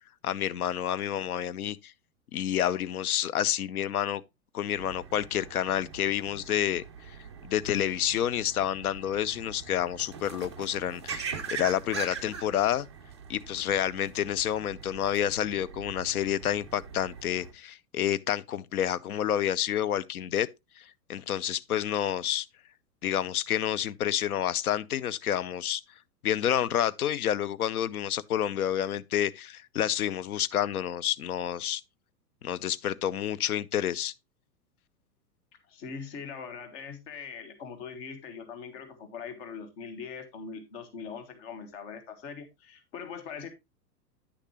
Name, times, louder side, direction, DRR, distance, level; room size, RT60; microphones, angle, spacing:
voice 1, 0.2-1.9 2.3-4.2 4.5-7.2 7.4-12.9 13.3-20.5 20.8-20.9 21.1-22.5 23.0-25.8 26.2-31.8 32.4-34.1, left 10 dB, 65° left, 0.6 m, -29 dB
sound 1, 4.7-17.5, right 6 dB, 20° right, 0.3 m, -42 dB
voice 2, 35.7-43.5, left 6 dB, 40° left, 1.4 m, -41 dB
9.6 x 6.5 x 2.9 m
figure-of-eight pair, 105°, 49 cm